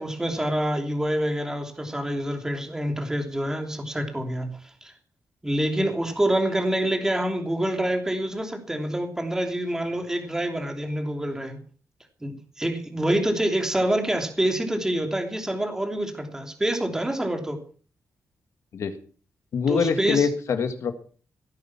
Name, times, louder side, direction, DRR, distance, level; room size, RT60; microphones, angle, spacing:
voice 1, 0.0-4.5 4.8-4.9 5.4-11.6 12.2-17.6 19.7-20.3, right 1 dB, 10° right, 4 dB, 3.0 m, -26 dB
voice 2, 19.5-20.9, left 6 dB, 70° left, 8 dB, 2.0 m, -24 dB
18.0 x 9.4 x 6.0 m, 0.42 s
wide cardioid pair, 135°, 5 cm